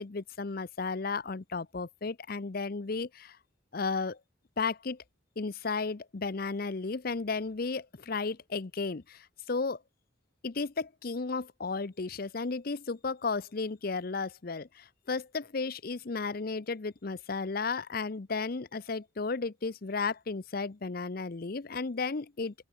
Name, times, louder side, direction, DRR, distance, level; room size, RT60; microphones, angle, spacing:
voice 1, 0.0-3.4 3.7-4.2 4.6-5.0 5.4-9.8 10.4-22.5, left 4 dB, 50° left, 0.6 m, -34 dB
open air
head